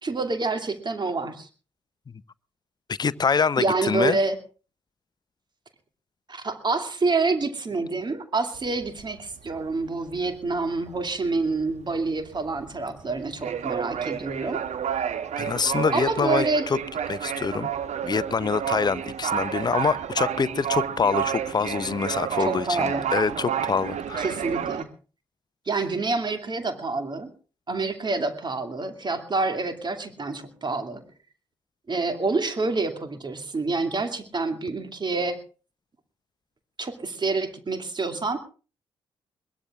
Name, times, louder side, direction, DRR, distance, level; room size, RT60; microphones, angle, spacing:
voice 1, 0.0-1.5 3.6-4.4 6.3-14.6 15.9-16.7 22.4-23.1 24.2-24.9 25.7-27.3 27.7-31.0 31.9-35.4 36.8-38.4, right 3 dB, 30° right, 2.5 m, -27 dB
voice 2, 2.9-4.2 15.4-16.8 17.1-17.7 18.0-24.3, left 5 dB, 30° left, 0.7 m, -25 dB
sound 1, 8.5-9.8 10.1-10.3 10.6-24.8, right 9 dB, 55° right, 1.3 m, -30 dB
22.0 x 20.5 x 2.5 m
figure-of-eight pair, 40°, 14 cm